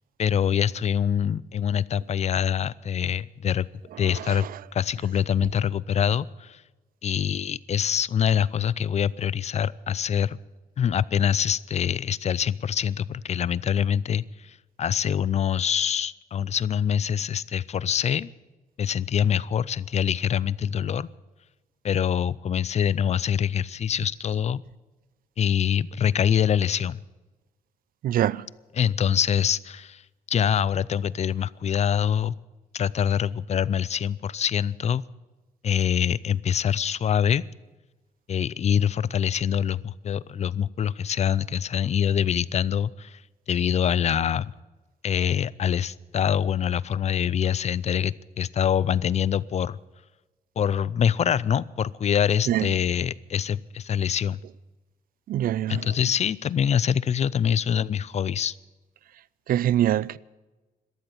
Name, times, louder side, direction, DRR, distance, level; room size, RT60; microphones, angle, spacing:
voice 1, 0.2-3.7 4.0-4.5 4.7-6.6 7.0-10.4 10.8-18.3 18.8-21.1 21.8-24.6 25.4-27.0 28.8-30.0 30.3-32.4 32.7-35.0 35.6-37.4 38.3-43.2 43.5-44.5 45.0-49.8 50.6-54.4 55.7-58.5, left 8 dB, 50° left, 0.4 m, -25 dB
voice 2, 4.0-4.5 28.0-28.5 52.5-52.7 55.3-55.9 59.5-60.2, right 12 dB, 70° right, 0.4 m, -24 dB
13.5 x 13.0 x 8.3 m
cardioid pair, 110°, 15 cm